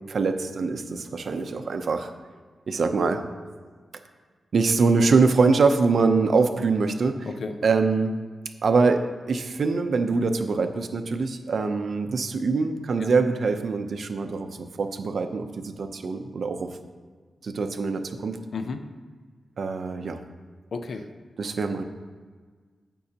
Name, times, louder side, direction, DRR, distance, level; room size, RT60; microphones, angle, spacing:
voice 1, 0.1-2.1 2.7-3.2 4.5-7.3 7.6-8.1 8.6-16.7 17.4-18.4 19.6-20.2 21.4-21.8, right 4 dB, 55° right, 7 dB, 0.7 m, -24 dB
voice 2, 18.5-18.8 20.7-21.0, left 4 dB, 60° left, 7 dB, 0.7 m, -32 dB
16.0 x 5.5 x 2.9 m, 1.5 s
wide cardioid pair, 160°, 0 cm